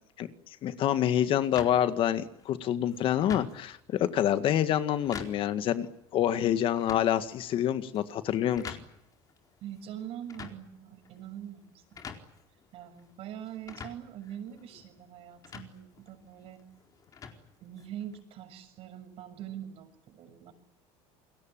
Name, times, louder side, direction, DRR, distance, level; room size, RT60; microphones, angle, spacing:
voice 1, 0.6-5.9 6.1-8.8, left 10 dB, 45° left, 11 dB, 1.9 m, -27 dB
sound 1, 1.6-18.2, left 6 dB, 30° left, 4.3 m, -48 dB
voice 2, 9.6-12.2 12.7-16.6 17.6-20.5, right 10 dB, 50° right, 9 dB, 7.1 m, -43 dB
29.0 x 22.5 x 9.0 m, 0.75 s
cardioid pair, 150°, 13 cm